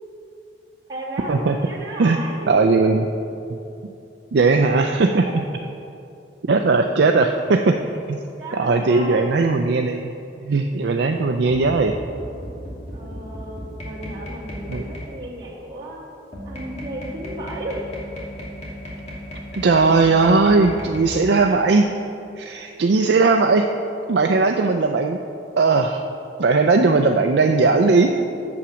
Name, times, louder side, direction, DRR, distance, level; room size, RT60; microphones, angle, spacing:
voice 1, 0.9-2.9 5.1-5.2 8.4-9.3 12.9-16.1 16.5-17.8, right 1 dB, 25° right, -9 dB, 2.2 m, -34 dB
voice 2, 2.0-3.1 3.8-3.9 4.3-5.4 6.5-7.7 8.1-8.2 8.6-10.1 10.4-12.0 14.7-14.8 19.5-21.9 22.4-23.7 24.1-25.2 25.6-26.1 26.4-28.2, right 3 dB, 65° right, 4 dB, 0.4 m, -18 dB
sound 1, 11.3-15.2 16.3-21.0, equal, 40° left, 2.4 m, -35 dB
8.6 x 7.1 x 6.2 m, 2.7 s
head